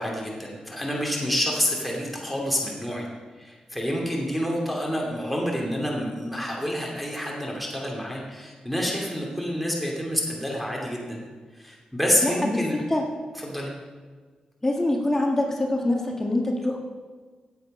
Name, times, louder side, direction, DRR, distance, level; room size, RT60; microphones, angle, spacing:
voice 1, 0.0-3.0 3.4-11.2 11.6-12.8 13.4-13.7, equal, ahead, -2 dB, 2.7 m, -28 dB
voice 2, 12.2-13.0 14.6-16.8, left 1 dB, 15° left, 0 dB, 1.8 m, -25 dB
17.0 x 8.0 x 5.6 m, 1.5 s
wide cardioid pair, 110°, 2 cm